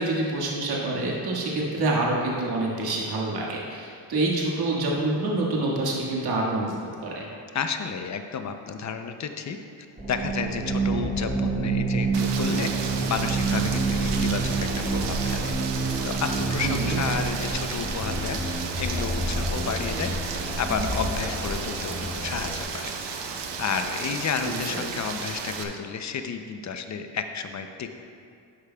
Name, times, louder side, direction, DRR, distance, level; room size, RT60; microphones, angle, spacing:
voice 1, 0.0-7.3 16.6-17.0 24.5-24.6, right 2 dB, 60° right, -4 dB, 1.8 m, -27 dB
voice 2, 7.5-9.6 10.1-12.7 13.1-15.5 16.0-18.4 18.8-22.9 23.6-27.9, left 6 dB, 40° left, 7 dB, 0.6 m, -31 dB
sound 1, 10.0-22.6, right 3 dB, 20° right, 1.8 m, -28 dB
Rain, 12.1-25.6, right 5 dB, 75° right, 0.9 m, -34 dB
12.0 x 8.4 x 2.3 m, 2.4 s
cardioid pair, 120°, 44 cm